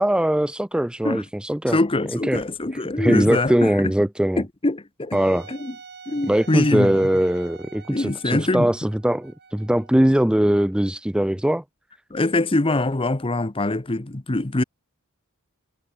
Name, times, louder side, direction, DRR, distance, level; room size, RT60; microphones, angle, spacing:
voice 1, 0.0-1.8 2.3-2.4 3.0-4.4 5.1-5.5 6.3-11.6, right 1 dB, 5° right, 0.4 m, -21 dB
voice 2, 1.7-3.9 4.4-5.2 5.5-5.7 6.1-7.1 7.9-8.7 12.1-14.6, left 2 dB, 25° left, 0.9 m, -23 dB
Wind instrument woodwind instrument, 5.1-10.8, right 5 dB, 50° right, 5.3 m, -46 dB
head